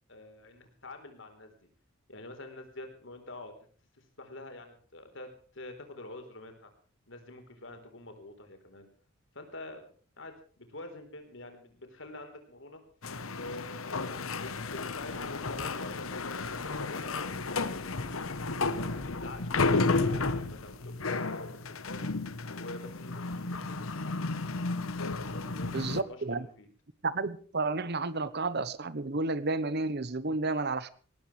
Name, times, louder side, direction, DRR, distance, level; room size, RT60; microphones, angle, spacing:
voice 1, 0.1-1.7 2.1-3.5 3.9-6.7 7.1-8.9 9.3-9.8 10.2-12.8 13.1-16.3 16.6-18.1 18.7-18.9 19.2-22.1 22.5-24.2 25.1-26.7, left 2 dB, 65° left, 7 dB, 4.1 m, -47 dB
sound 1, 13.0-26.0, left 3 dB, 80° left, 1.1 m, -32 dB
voice 2, 25.7-26.5 27.0-30.9, right 3 dB, 50° right, 16 dB, 1.1 m, -31 dB
20.0 x 18.5 x 3.4 m, 0.42 s
head